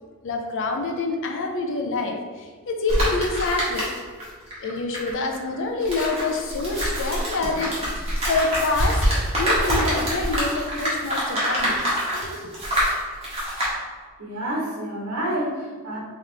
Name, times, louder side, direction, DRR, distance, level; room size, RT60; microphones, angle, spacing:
voice 1, 0.2-3.9 4.6-9.0 9.3-12.5, left 3 dB, 60° left, 2 dB, 0.5 m, -27 dB
sound 1, 2.9-4.2 4.5-13.7, equal, 30° right, 1.3 m, -25 dB
voice 2, 14.2-16.0, right 1 dB, 65° right, -7 dB, 1.2 m, -28 dB
3.9 x 3.1 x 3.3 m, 1.5 s
head